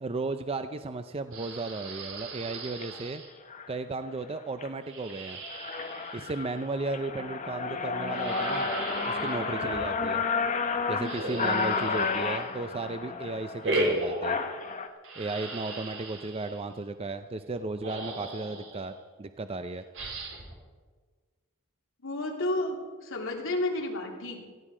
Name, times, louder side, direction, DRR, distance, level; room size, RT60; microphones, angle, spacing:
voice 1, 0.0-3.2 3.7-5.4 6.1-8.7 9.1-10.2 10.9-14.4 15.2-19.8, right 3 dB, 25° right, 9 dB, 0.5 m, -35 dB
sound 1, 1.3-3.3 4.8-6.6 8.1-9.9 11.0-12.7 13.6-14.7 15.0-16.6 17.5-17.6 17.8-18.9 19.9-20.5, right 1 dB, 60° right, 3.8 m, -36 dB
sound 2, 2.7-2.8 3.5-3.7 4.2-4.7 5.1-5.2 5.4-14.9, left 4 dB, 35° left, 1.2 m, -31 dB
voice 2, 22.0-24.4, left 1 dB, 65° left, 0 dB, 3.3 m, -31 dB
17.5 x 15.0 x 5.0 m, 1.5 s
head